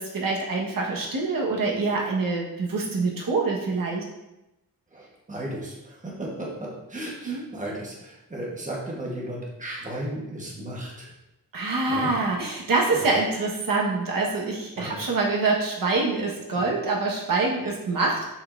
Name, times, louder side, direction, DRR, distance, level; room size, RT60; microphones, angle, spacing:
voice 1, 0.0-4.0 7.2-7.4 11.5-18.3, right 3 dB, 65° right, -2 dB, 1.4 m, -25 dB
voice 2, 4.9-11.1 11.9-12.1 13.0-13.1 14.8-14.9, right 1 dB, 20° right, -3 dB, 1.2 m, -35 dB
6.9 x 5.3 x 2.6 m, 0.95 s
wide cardioid pair, 160°, 36 cm